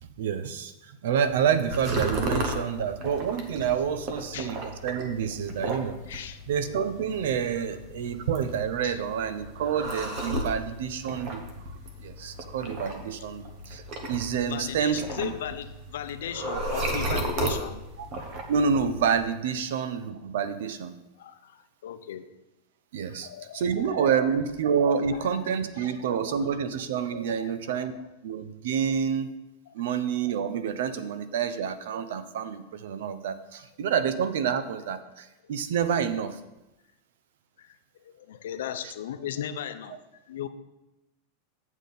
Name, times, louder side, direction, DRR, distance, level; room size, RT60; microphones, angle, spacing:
voice 1, 0.2-6.0 6.5-11.4 12.0-15.3 18.0-18.1 18.5-20.9 22.9-23.3 23.5-27.9 28.2-29.3 29.7-36.4 38.8-38.9, right 7 dB, 65° right, 12 dB, 0.6 m, -28 dB
sound 1, 1.2-19.2, right 1 dB, 30° right, 1.0 m, -35 dB
voice 2, 6.1-6.4 8.8-9.0 14.4-17.8 21.2-22.3 23.1-23.9 25.4-26.0 26.3-26.4 27.4-27.6 29.7-29.8 37.6-37.7 38.1-40.0 40.3-40.5, left 10 dB, 85° left, 11 dB, 0.6 m, -37 dB
8.3 x 7.2 x 4.0 m, 0.96 s
supercardioid pair, 180°, 0 cm